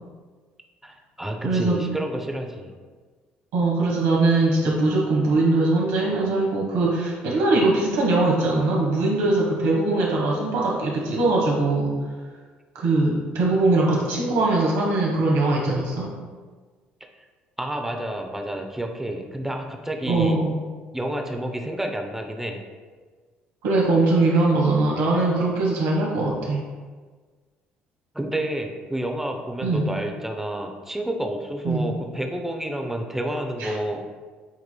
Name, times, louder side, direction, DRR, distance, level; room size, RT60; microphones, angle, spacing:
voice 1, 0.8-2.7 17.6-20.4 20.9-22.6 28.1-34.0, right 1 dB, 5° right, 3 dB, 0.7 m, -29 dB
voice 2, 1.4-1.8 3.5-12.0 12.7-16.1 20.0-20.5 23.6-26.6 29.6-29.9 31.6-31.9 33.6-33.7, right 2 dB, 70° right, -3 dB, 1.3 m, -21 dB
8.0 x 3.0 x 2.2 m, 1.4 s
hypercardioid pair, 60°, 5 cm